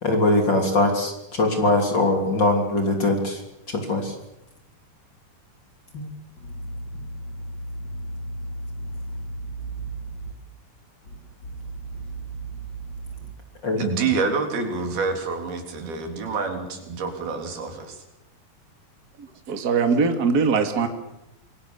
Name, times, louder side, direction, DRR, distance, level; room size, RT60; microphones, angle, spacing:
voice 1, 0.0-3.4 3.7-4.1 5.9-6.1 13.6-13.8, left 2 dB, 30° left, 3 dB, 3.4 m, -21 dB
voice 2, 13.8-18.0, right 4 dB, 85° right, 4 dB, 5.4 m, -27 dB
voice 3, 19.2-20.9, right 5 dB, 30° right, 6 dB, 2.3 m, -22 dB
26.5 x 22.0 x 7.1 m, 0.88 s
omnidirectional pair, 4.3 m